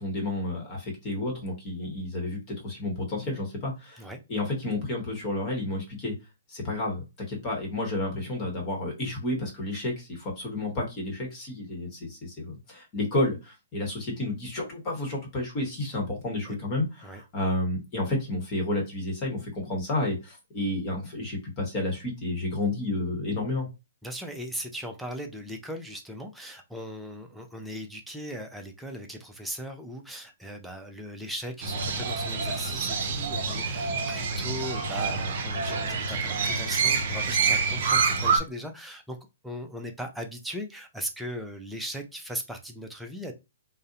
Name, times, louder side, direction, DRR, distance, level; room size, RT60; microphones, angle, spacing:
voice 1, 0.0-4.0 4.3-6.1 6.5-23.7, left 2 dB, 30° left, 1 dB, 1.0 m, -31 dB
voice 2, 24.0-39.2 39.4-43.3, equal, ahead, 3 dB, 0.5 m, -38 dB
Crow, 31.6-38.4, right 4 dB, 50° right, 0.6 m, -27 dB
2.6 x 2.0 x 2.5 m, 0.25 s
hypercardioid pair, 130°, 0 cm